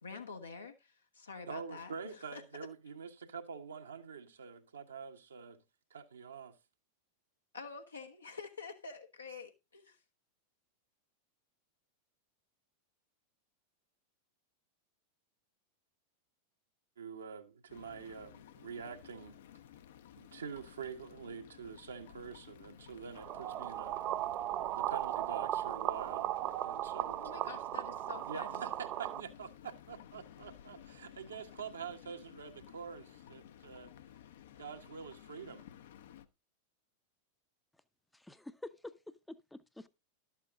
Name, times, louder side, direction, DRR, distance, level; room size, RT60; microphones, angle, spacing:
voice 1, 0.0-2.4 7.5-10.0 27.1-28.7, left 4 dB, 75° left, 1.1 m, -47 dB
voice 2, 1.5-5.6 5.9-6.5 17.0-19.4 20.2-24.0 24.7-26.3 26.6-27.2 28.3-33.9 34.6-35.7, right 6 dB, 70° right, 1.2 m, -46 dB
sound 1, 17.7-36.3, left 10 dB, 60° left, 0.8 m, -55 dB
sound 2, 23.2-29.2, right 14 dB, 35° right, 0.5 m, -37 dB
voice 3, 38.1-39.9, left 2 dB, 5° left, 0.7 m, -49 dB
12.0 x 7.3 x 3.7 m
figure-of-eight pair, 90°, 0 cm